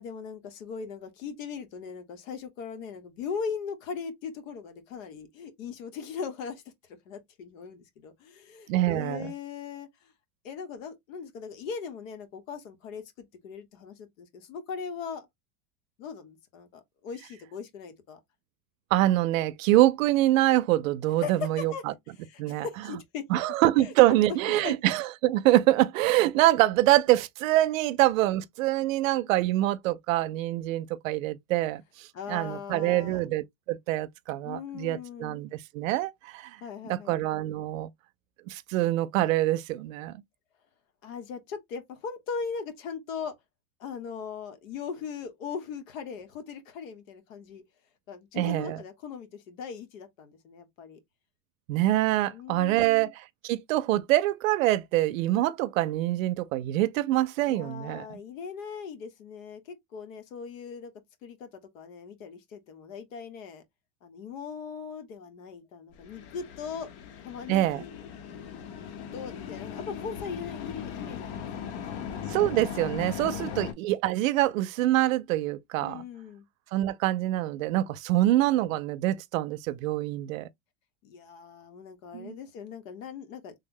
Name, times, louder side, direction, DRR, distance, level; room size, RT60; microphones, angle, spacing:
voice 1, 0.0-6.6 7.0-9.9 10.4-15.3 16.0-18.2 21.2-21.8 22.2-23.2 23.8-23.9 24.5-24.8 32.1-33.2 34.4-35.4 36.6-37.2 41.0-43.3 43.8-47.6 48.1-51.0 52.3-53.1 57.5-60.9 61.2-63.6 64.0-66.9 67.2-67.9 69.1-72.0 73.3-73.6 75.8-76.4 81.0-83.5, left 6 dB, 80° left, 1.2 m, -39 dB
voice 2, 8.7-9.3 18.9-21.9 22.4-22.7 23.3-36.6 36.8-37.9 38.5-40.2 48.4-48.8 51.7-58.2 67.5-67.8 72.3-76.0 76.7-80.5 82.1-82.3, right 15 dB, 80° right, 0.6 m, -25 dB
sound 1, 65.9-73.7, left 8 dB, 55° left, 0.8 m, -38 dB
3.4 x 2.1 x 3.7 m
supercardioid pair, 175°, 39 cm